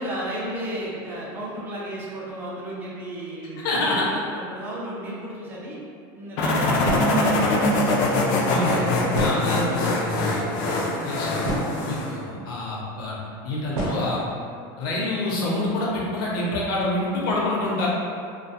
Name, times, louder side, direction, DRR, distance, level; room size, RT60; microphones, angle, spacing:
voice 1, 0.0-5.8 6.1-9.3 10.9-11.6, right 1 dB, 20° right, -6 dB, 0.4 m, -34 dB
voice 2, 3.6-4.1 6.6-6.9 8.5-8.8 9.2-10.6 11.0-11.6 11.8-13.2 13.4-14.2 14.8-17.9, left 2 dB, 80° left, -5 dB, 0.7 m, -27 dB
sound 1, 6.4-12.2, left 2 dB, 50° left, 0.3 m, -23 dB
sound 2, 6.8-7.3 9.1-9.8 10.7-10.8 11.2-12.0 12.9-13.0 13.7-14.1, right 1 dB, 65° right, 0.7 m, -28 dB
2.3 x 2.2 x 2.7 m, 2.4 s
cardioid pair, 170°, 11 cm